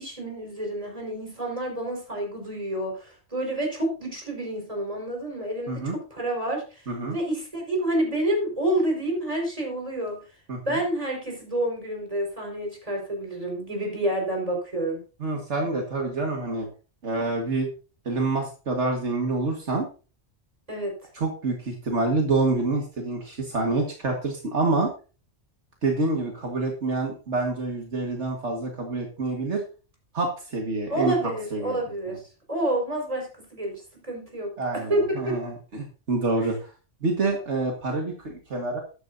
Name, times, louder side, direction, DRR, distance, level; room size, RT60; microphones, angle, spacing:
voice 1, 0.0-6.9 7.1-10.2 10.6-15.0 20.7-20.9 30.9-32.2 32.5-35.4, right 1 dB, 30° right, 1 dB, 4.8 m, -28 dB
voice 2, 5.7-6.0 6.9-7.2 10.5-10.8 15.2-16.7 17.0-17.7 18.1-19.9 21.2-24.9 25.8-29.6 30.1-31.1 31.5-31.8 34.6-36.5 37.0-38.8, right 3 dB, 75° right, 1 dB, 2.1 m, -27 dB
13.0 x 11.0 x 2.7 m, 0.35 s
omnidirectional pair, 1.2 m